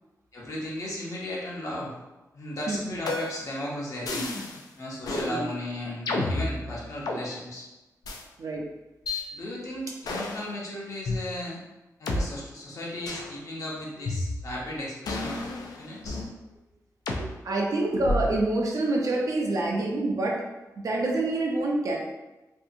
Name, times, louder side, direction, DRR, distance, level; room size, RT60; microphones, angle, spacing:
voice 1, 0.3-2.0 2.3-4.3 4.8-7.7 9.3-11.6 12.0-16.2 16.5-16.6, left 1 dB, 55° left, -4 dB, 0.8 m, -35 dB
voice 2, 2.7-3.0 5.1-5.5 8.4-8.7 17.2-20.4 20.8-22.0, right 2 dB, 60° right, -1 dB, 0.5 m, -27 dB
sound 1, 3.1-3.5 4.1-4.6 5.0-5.3 6.1-7.2 8.0-8.2 9.1-9.2 10.0-10.5 11.1-11.2 12.1-12.2 13.1-13.3 14.1-14.6 15.1-16.3 17.1-17.2 18.0-18.4, left 2 dB, 80° left, 0.4 m, -31 dB
2.7 x 2.4 x 2.6 m, 1.0 s
wide cardioid pair, 115°, 6 cm